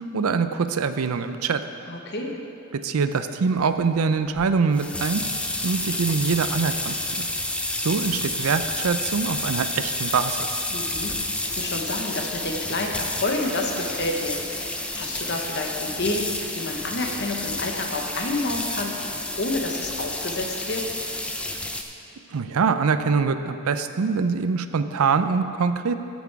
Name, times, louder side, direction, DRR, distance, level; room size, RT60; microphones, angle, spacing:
voice 1, 0.0-1.6 2.7-5.2 5.6-7.0 7.8-10.6 22.3-26.0, right 5 dB, 80° right, 10 dB, 0.5 m, -24 dB
voice 2, 1.9-2.4 10.7-11.2 11.4-20.8, left 2 dB, 50° left, 1 dB, 1.0 m, -29 dB
sound 1, 4.4-21.8, left 2 dB, 5° left, 0.4 m, -30 dB
14.0 x 6.0 x 4.7 m, 2.7 s
head